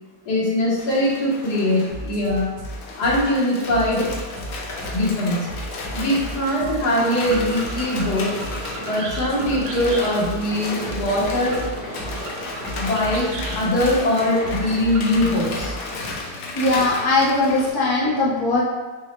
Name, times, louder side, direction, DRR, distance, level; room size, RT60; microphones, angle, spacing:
voice 1, 0.3-2.5 2.9-4.1 4.9-5.5 5.9-8.3 8.8-11.6 12.7-15.8, left 1 dB, 85° left, -5 dB, 1.6 m, -22 dB
sound 1, 0.8-17.7, left 2 dB, 65° left, 1.0 m, -34 dB
sound 2, 1.9-16.1, equal, 65° right, 1.7 m, -34 dB
sound 3, 6.8-15.7, right 1 dB, 50° right, 0.6 m, -36 dB
voice 2, 16.2-18.6, left 2 dB, 20° left, -6 dB, 0.6 m, -20 dB
6.1 x 2.1 x 3.1 m, 1.3 s
omnidirectional pair, 1.7 m